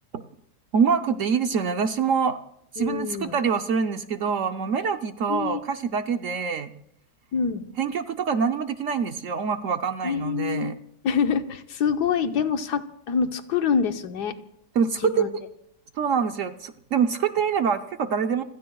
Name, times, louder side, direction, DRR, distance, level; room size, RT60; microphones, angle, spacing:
voice 1, 0.7-2.4 2.7-6.7 7.8-10.7 14.7-15.4 16.0-18.4, right 6 dB, 60° right, 7 dB, 0.9 m, -25 dB
voice 2, 2.8-3.4 5.3-5.6 7.3-7.6 10.0-10.7 11.0-14.4 15.0-15.3, left 6 dB, 75° left, 7 dB, 1.5 m, -25 dB
28.5 x 17.0 x 2.3 m, 0.74 s
omnidirectional pair, 1.8 m